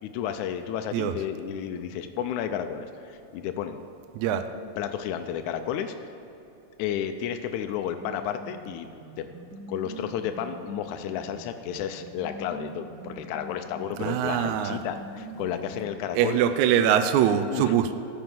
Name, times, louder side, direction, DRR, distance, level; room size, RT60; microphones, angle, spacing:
voice 1, 0.0-3.8 4.6-5.9 6.8-8.9 9.2-9.3 9.7-16.4 17.4-17.7, left 9 dB, 80° left, 7 dB, 1.8 m, -32 dB
sound 1, 8.0-16.0, right 2 dB, 45° right, 1.8 m, -44 dB
voice 2, 14.0-14.8 16.1-17.9, right 9 dB, 80° right, 8 dB, 1.7 m, -23 dB
14.0 x 6.0 x 7.3 m, 2.8 s
omnidirectional pair, 3.9 m